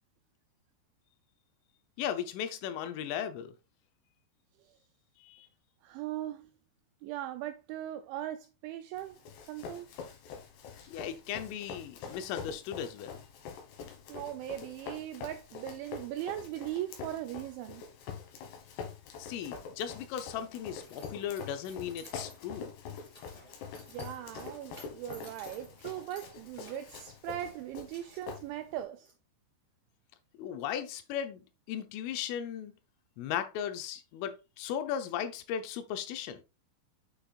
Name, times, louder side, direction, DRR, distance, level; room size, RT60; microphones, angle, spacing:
voice 1, 2.0-3.5 5.2-5.5 10.9-13.2 19.2-22.7 30.4-31.4 31.7-32.7 33.2-36.4, left 9 dB, 85° left, 3.3 m, -36 dB
voice 2, 5.8-6.5 7.0-9.2 9.5-9.9 14.1-17.8 23.9-29.1, right 12 dB, 85° right, 2.6 m, -39 dB
Run, 9.0-28.8, left 6 dB, 65° left, 3.2 m, -45 dB
Keys jangling, 20.1-29.1, left 1 dB, 10° left, 2.1 m, -56 dB
8.5 x 5.9 x 2.4 m
omnidirectional pair, 5.7 m